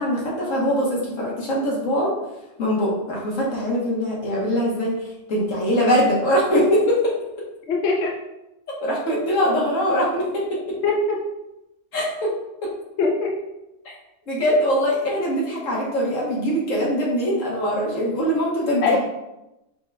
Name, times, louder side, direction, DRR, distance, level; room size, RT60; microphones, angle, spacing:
voice 1, 0.0-2.1 2.6-4.9 5.3-7.1 8.8-10.8 11.9-12.3 12.6-12.7 14.3-18.8, equal, 80° left, -4 dB, 1.6 m, -22 dB
voice 2, 7.7-8.1 10.8-11.2 13.0-13.4 18.8-19.0, left 3 dB, 65° left, -1 dB, 0.8 m, -21 dB
5.0 x 3.6 x 2.2 m, 0.93 s
omnidirectional pair, 1.3 m